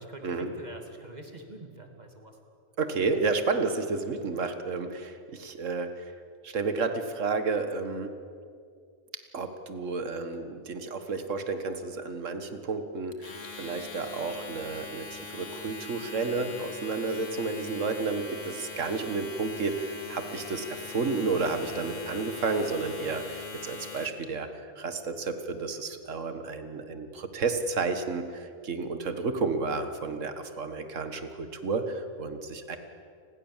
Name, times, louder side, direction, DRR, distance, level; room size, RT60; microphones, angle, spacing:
voice 1, 0.0-2.4, right 2 dB, 30° right, 4 dB, 2.9 m, -45 dB
voice 2, 2.8-6.0 6.4-8.1 9.3-24.5 24.8-32.8, right 4 dB, 70° right, 8 dB, 2.0 m, -31 dB
Domestic sounds home sounds, 13.1-24.3, left 4 dB, 70° left, 2.3 m, -42 dB
29.5 x 21.5 x 7.4 m, 2.3 s
omnidirectional pair, 1.4 m